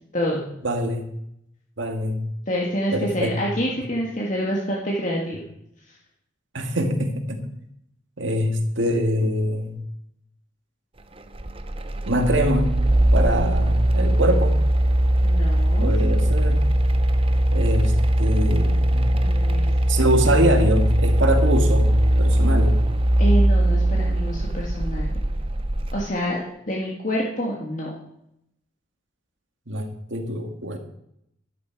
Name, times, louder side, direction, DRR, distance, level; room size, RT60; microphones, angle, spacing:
voice 1, 0.3-1.1 1.8-2.2 2.9-3.4 6.5-7.4 8.2-9.8 12.1-12.8 13.1-14.6 15.8-16.7 17.5-19.1 19.9-21.9 22.2-22.8 29.7-30.8, equal, 75° right, 5 dB, 1.9 m, -24 dB
voice 2, 2.5-5.4 15.2-15.9 19.1-19.7 23.2-25.2 25.9-27.9, equal, 40° left, -3 dB, 1.8 m, -27 dB
sound 1, 11.3-26.1, right 1 dB, 30° right, 0.7 m, -20 dB
12.0 x 11.0 x 4.6 m, 0.78 s
head